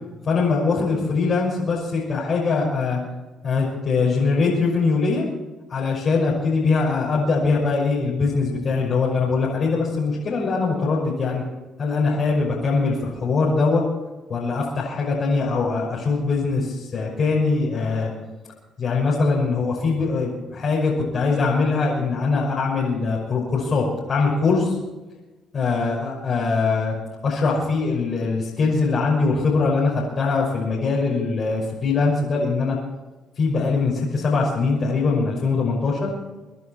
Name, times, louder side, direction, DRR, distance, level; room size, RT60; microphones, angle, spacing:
voice 1, 0.2-3.0 3.4-5.2 5.7-11.4 11.8-13.8 14.3-18.1 18.8-24.8 25.5-26.9 27.2-32.8 33.4-36.1, left 4 dB, 50° left, -5 dB, 6.0 m, -22 dB
25.5 x 11.0 x 4.5 m, 1.2 s
supercardioid pair, 75°, 0 cm